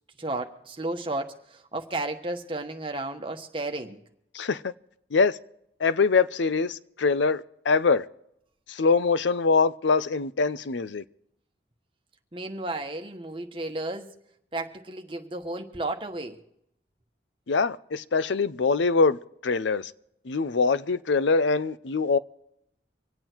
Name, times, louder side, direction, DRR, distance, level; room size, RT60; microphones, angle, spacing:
voice 1, 0.2-4.0 12.3-14.1 14.5-16.4, right 2 dB, 30° right, 1.3 m, -33 dB
voice 2, 4.3-4.7 5.1-5.4 5.8-8.0 8.7-11.0 17.5-19.9 20.2-22.2, left 4 dB, 80° left, 0.6 m, -23 dB
25.5 x 8.9 x 4.5 m
head